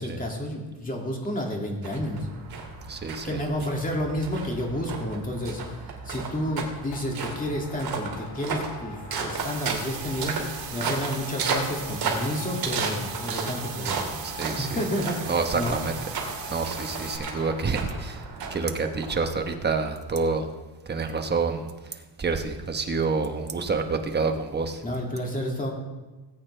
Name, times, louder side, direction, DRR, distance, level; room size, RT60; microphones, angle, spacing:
voice 1, 0.0-2.3 3.2-15.8 24.8-25.7, equal, 20° left, 0 dB, 2.4 m, -31 dB
sound 1, 1.8-19.5, right 4 dB, 50° right, 2.6 m, -34 dB
voice 2, 2.9-3.3 14.2-14.7 15.3-16.0 16.5-18.2 18.5-20.5 20.9-21.7 22.2-24.8, right 4 dB, 20° right, 5 dB, 1.1 m, -27 dB
sound 2, 6.0-6.3 6.8-17.6, left 4 dB, 45° left, 2.1 m, -44 dB
sound 3, 9.4-17.2, right 9 dB, 80° right, 1.7 m, -39 dB
19.0 x 8.7 x 3.4 m, 1.2 s
cardioid pair, 135°, 45 cm